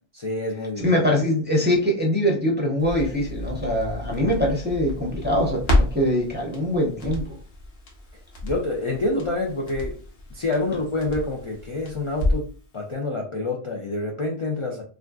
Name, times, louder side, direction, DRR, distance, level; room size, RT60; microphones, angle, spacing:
voice 1, 0.1-0.9 8.4-10.0 10.3-12.5 12.7-14.8, left 2 dB, 45° left, 0 dB, 0.4 m, -27 dB
voice 2, 0.8-7.4, left 1 dB, 15° right, -2 dB, 0.5 m, -23 dB
Crackle, 2.8-12.6 12.9-13.0, left 1 dB, 70° left, 1.2 m, -30 dB
3.5 x 2.5 x 2.3 m, 0.40 s
omnidirectional pair, 1.1 m